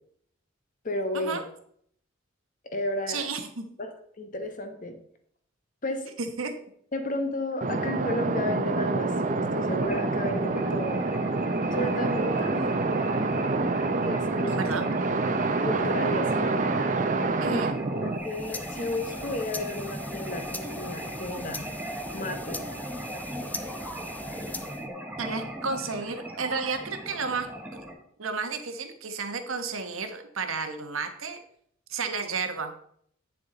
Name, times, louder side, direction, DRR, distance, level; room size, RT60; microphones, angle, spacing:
voice 1, 0.8-1.4 2.6-3.3 3.8-3.9 4.2-5.0 5.8-6.1 6.9-11.0 11.7-12.7 14.0-14.6 15.6-16.5 17.5-17.6 17.9-21.6 22.1-22.7, left 1 dB, 40° left, 7 dB, 1.1 m, -33 dB
voice 2, 3.1-3.7 6.2-6.6 14.5-14.8 17.4-17.8 25.2-27.5 28.2-31.4 31.9-32.7, right 4 dB, 85° right, 7 dB, 1.2 m, -32 dB
sound 1, 7.6-18.2, right 3 dB, 40° right, 0.6 m, -27 dB
sound 2, 9.8-27.9, right 1 dB, 10° right, 1.1 m, -38 dB
sound 3, 18.2-24.9, left 2 dB, 10° left, 0.4 m, -41 dB
8.5 x 7.0 x 3.9 m, 0.65 s
head